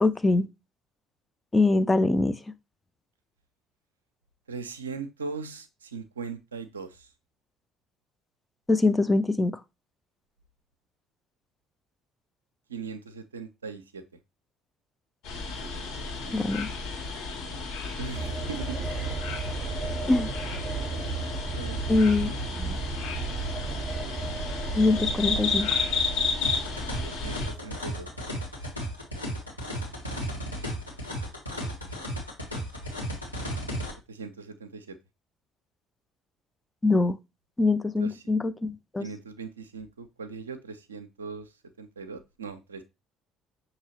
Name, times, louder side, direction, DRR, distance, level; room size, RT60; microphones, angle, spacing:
voice 1, 0.0-0.5 1.5-2.4 8.7-9.5 16.3-16.7 20.1-20.3 21.9-22.3 22.6-22.8 24.7-25.7 36.8-37.2 37.6-39.1, left 3 dB, 15° left, 0.4 m, -23 dB
voice 2, 4.5-7.1 12.7-14.0 18.0-18.9 21.5-22.4 27.0-28.1 34.1-35.0 38.0-38.2 39.0-41.5 41.8-42.8, right 5 dB, 80° right, 0.4 m, -39 dB
sound 1, 15.2-27.5, left 4 dB, 60° left, 1.6 m, -32 dB
sound 2, 18.2-30.0 30.3-30.4, right 5 dB, 40° right, 0.6 m, -35 dB
sound 3, 26.4-33.9, equal, 90° left, 1.1 m, -34 dB
6.1 x 2.9 x 2.8 m
figure-of-eight pair, 55°, 0 cm